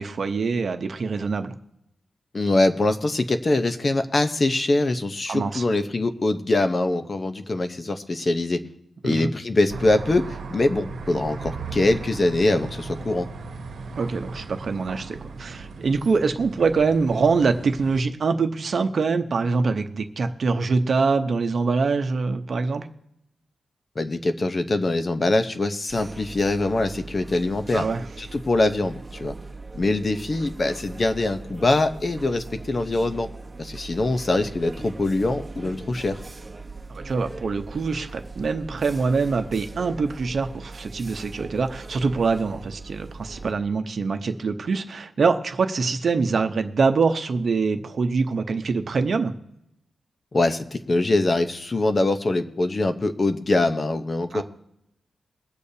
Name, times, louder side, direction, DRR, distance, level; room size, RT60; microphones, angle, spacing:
voice 1, 0.0-1.5 5.3-5.6 9.0-9.3 14.0-22.9 27.7-28.0 36.9-49.3 54.3-54.4, right 4 dB, 55° right, 7 dB, 0.8 m, -24 dB
voice 2, 2.3-8.6 9.0-13.3 24.0-27.9 28.2-29.3 29.7-33.3 33.6-36.2 50.3-54.4, left 2 dB, 35° left, 9 dB, 0.8 m, -23 dB
sound 1, 9.7-18.0, right 4 dB, 85° right, 1.0 m, -37 dB
sound 2, 25.9-43.5, right 3 dB, 25° right, 1.1 m, -40 dB
22.0 x 8.4 x 2.8 m, 0.84 s
wide cardioid pair, 110°, 0 cm